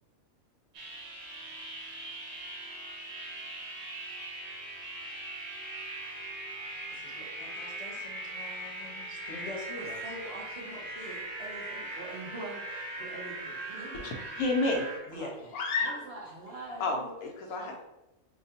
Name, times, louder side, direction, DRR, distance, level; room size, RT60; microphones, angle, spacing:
sound 1, 0.7-15.0, right 2 dB, 80° right, 1.4 m, -40 dB
voice 1, 6.9-10.0 15.1-15.3, left 2 dB, 30° left, -4 dB, 0.9 m, -44 dB
voice 2, 9.8-14.1 15.1-15.5 15.8-17.1 17.5-17.8, right 2 dB, 50° right, -3 dB, 0.9 m, -44 dB
voice 3, 14.0-14.9 15.5-15.9 16.8-17.8, left 3 dB, 80° left, 1 dB, 1.2 m, -30 dB
5.6 x 2.2 x 2.8 m, 0.97 s
omnidirectional pair, 1.5 m